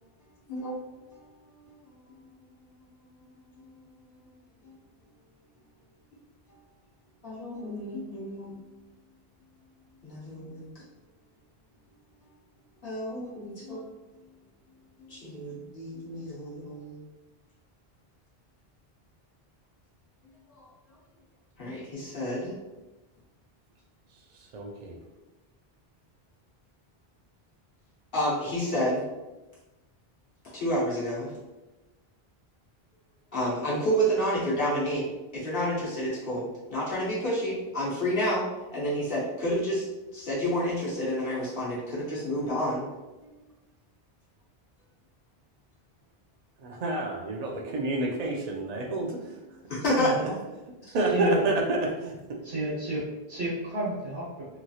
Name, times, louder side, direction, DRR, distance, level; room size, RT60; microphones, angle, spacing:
voice 1, 7.2-8.5 10.0-10.7 12.8-13.8 15.1-17.0 20.5-20.7 21.6-22.5 28.1-29.0 30.5-31.3 33.3-35.0 35.3-38.4 38.7-39.8 40.1-42.9 43.2-43.3 49.7-50.1, equal, 65° left, -7 dB, 1.0 m, -29 dB
voice 2, 24.3-25.0 46.6-49.3 50.2-50.3 50.9-52.4, right 2 dB, 55° right, 1 dB, 0.5 m, -29 dB
voice 3, 51.1-51.4 52.4-53.0 53.3-54.5, right 2 dB, 90° right, -8 dB, 1.3 m, -31 dB
3.0 x 2.7 x 2.3 m, 1.1 s
omnidirectional pair, 1.0 m